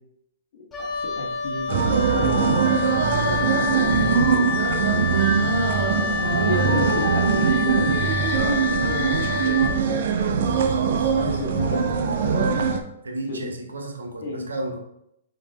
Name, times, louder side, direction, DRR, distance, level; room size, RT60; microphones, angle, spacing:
voice 1, 0.5-4.7 6.1-12.6 13.3-13.5 14.2-14.5, left 2 dB, 60° left, -2 dB, 1.2 m, -32 dB
Wind instrument woodwind instrument, 0.7-9.8, left 5 dB, 15° left, 0.8 m, -28 dB
sound 1, 1.7-12.8, right 6 dB, 60° right, 0.5 m, -22 dB
voice 2, 13.0-14.8, right 2 dB, 85° right, 3 dB, 0.9 m, -32 dB
5.3 x 2.8 x 3.4 m, 0.77 s
hypercardioid pair, 120°, 0 cm